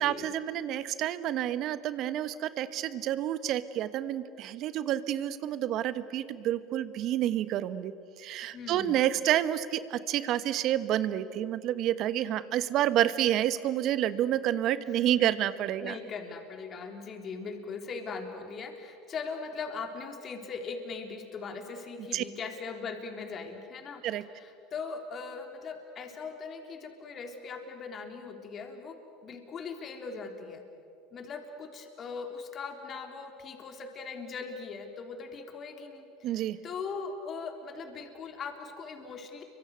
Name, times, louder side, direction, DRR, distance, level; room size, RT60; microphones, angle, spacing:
voice 1, 0.0-7.9 8.2-16.0 22.1-22.2 24.0-24.2 36.2-36.6, right 12 dB, 55° right, 13 dB, 1.3 m, -29 dB
voice 2, 8.5-9.0 15.1-15.3 15.8-24.0 24.3-30.6 31.1-39.4, left 5 dB, 40° left, 4 dB, 3.7 m, -40 dB
29.5 x 24.5 x 7.9 m, 2.5 s
hypercardioid pair, 85°, 0 cm